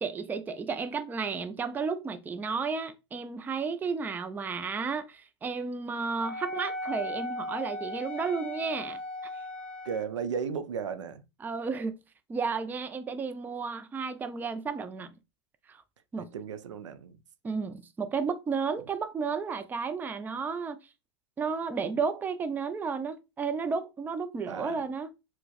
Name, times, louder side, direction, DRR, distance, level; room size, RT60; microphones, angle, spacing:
voice 1, 0.0-9.0 9.3-9.4 11.4-11.9 12.3-15.1 15.7-15.8 16.1-16.3 17.4-20.8 21.4-25.1, right 5 dB, 10° right, 0.3 m, -32 dB
Wind instrument woodwind instrument, 6.2-10.1, left 1 dB, 10° left, 1.4 m, -37 dB
voice 2, 9.8-11.2 16.2-17.2 24.5-24.8, right 6 dB, 80° right, 0.5 m, -35 dB
4.5 x 2.1 x 2.3 m
hypercardioid pair, 100°, 15 cm